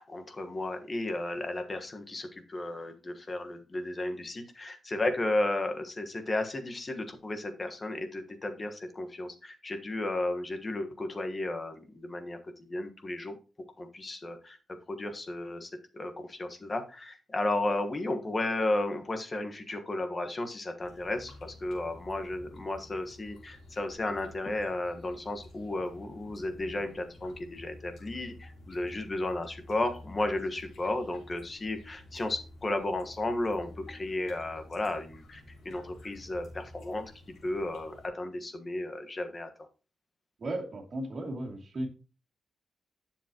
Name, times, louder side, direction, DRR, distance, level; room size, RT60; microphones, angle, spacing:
voice 1, 0.0-13.4 13.8-14.6 14.9-37.1 37.4-39.5, left 2 dB, 25° left, 1.3 m, -34 dB
sound 1, 20.8-38.1, left 1 dB, 70° left, 3.3 m, -51 dB
voice 2, 40.4-41.9, right 1 dB, 45° right, 2.6 m, -35 dB
10.0 x 7.1 x 2.9 m
wide cardioid pair, 130°, 0 cm